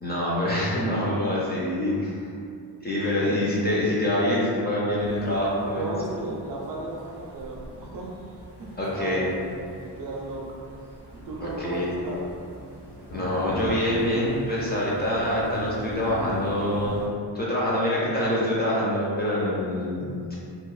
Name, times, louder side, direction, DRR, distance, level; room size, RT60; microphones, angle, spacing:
voice 1, 0.0-2.2 2.8-5.9 8.8-9.2 11.4-11.9 13.1-17.0 17.3-20.4, left 1 dB, 25° left, -7 dB, 0.3 m, -25 dB
sound 1, 5.0-17.1, equal, 80° left, 0.9 m, -40 dB
voice 2, 5.7-8.1 8.6-9.3 10.0-10.6 11.1-12.3, right 2 dB, 55° right, -3 dB, 0.5 m, -35 dB
2.8 x 2.0 x 2.3 m, 2.4 s
wide cardioid pair, 140°, 42 cm